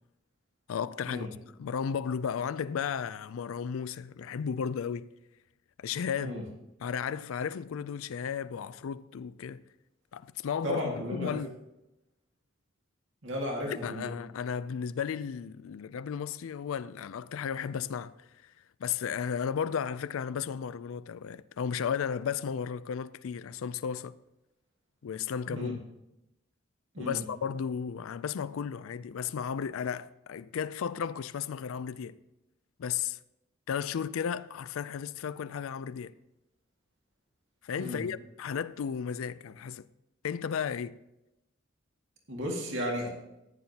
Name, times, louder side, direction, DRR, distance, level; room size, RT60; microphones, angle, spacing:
voice 1, 0.7-1.3 1.6-5.1 5.8-6.4 6.8-9.6 10.1-11.5 13.7-18.1 18.4-18.5 18.8-24.1 25.0-25.8 27.0-32.2 32.8-33.2 33.7-36.1 37.6-39.9 40.2-41.0, left 7 dB, 80° left, 0.4 m, -34 dB
voice 2, 10.6-11.4 13.2-14.1 25.5-25.7 26.9-27.2 37.8-38.0 42.3-43.1, equal, 65° right, 2.0 m, -34 dB
14.5 x 9.5 x 2.9 m
head